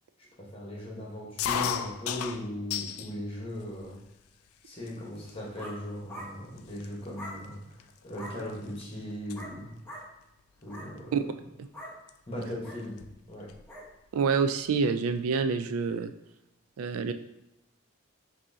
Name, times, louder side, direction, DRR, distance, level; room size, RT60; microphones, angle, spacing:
voice 1, 0.4-4.0 4.6-9.8 10.6-11.1 12.3-13.0 13.3-13.5, equal, 25° left, -3 dB, 1.1 m, -38 dB
sound 1, 1.4-3.1 3.5-4.2 4.9-5.0 5.2-5.6 6.2-6.3 6.6-8.8 9.1-9.4 10.7-11.0 12.1-12.2 12.4-12.5 12.8-13.7, left 9 dB, 90° left, 0.3 m, -35 dB
sound 2, 5.2-5.8 6.1-6.3 7.1-7.4 8.1-8.4 9.3-9.6 9.8-10.1 10.6-10.9 11.7-12.0 12.6-12.8 13.7-13.9, equal, 10° left, 0.8 m, -43 dB
voice 2, 14.1-16.1 16.8-17.1, right 5 dB, 90° right, 9 dB, 0.3 m, -27 dB
6.1 x 2.8 x 2.7 m, 0.88 s
head